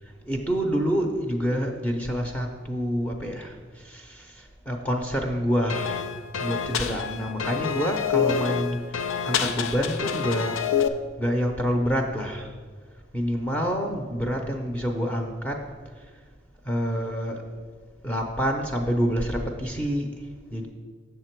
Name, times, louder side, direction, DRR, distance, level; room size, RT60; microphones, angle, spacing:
voice 1, 0.3-6.0 6.4-10.6 11.2-12.5 13.1-15.6 16.7-17.4 18.0-20.1 20.5-20.7, equal, 10° left, 1 dB, 0.6 m, -27 dB
sound 1, 5.7-10.9, left 7 dB, 90° left, 0.5 m, -27 dB
7.2 x 6.6 x 4.5 m, 1.5 s
head